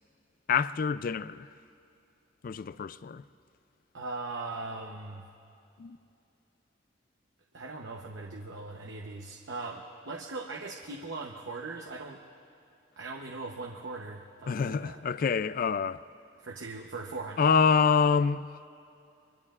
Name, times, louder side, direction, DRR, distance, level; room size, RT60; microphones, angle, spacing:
voice 1, 0.5-1.5 2.4-3.2 5.8-6.0 14.5-16.0 17.4-18.7, left 6 dB, 50° left, 0.3 m, -26 dB
voice 2, 3.9-5.3 7.5-12.2 13.0-15.0 16.4-17.4, right 3 dB, 80° right, 0.9 m, -40 dB
24.0 x 23.0 x 2.4 m
head